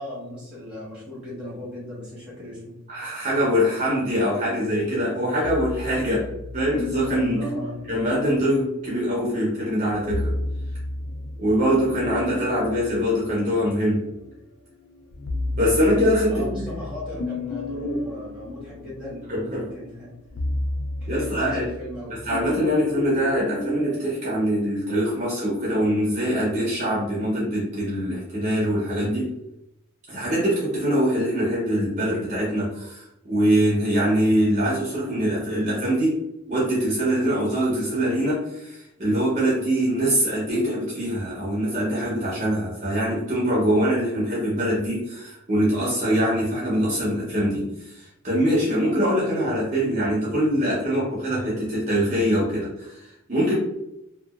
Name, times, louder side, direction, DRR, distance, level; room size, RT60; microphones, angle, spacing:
voice 1, 0.0-2.8 7.3-7.8 16.3-19.2 19.7-20.1 21.0-22.2, left 1 dB, 5° right, -7 dB, 1.2 m, -37 dB
voice 2, 2.9-6.3 6.5-7.4 7.9-10.4 11.4-14.0 15.6-16.6 19.3-19.7 21.1-21.7 22.3-29.3 30.1-36.2 36.5-53.5, equal, 35° right, -5 dB, 0.7 m, -23 dB
sound 1, 5.4-8.9 9.9-14.3 14.8-24.0, left 2 dB, 65° left, 0.4 m, -32 dB
2.8 x 2.4 x 2.4 m, 0.86 s
head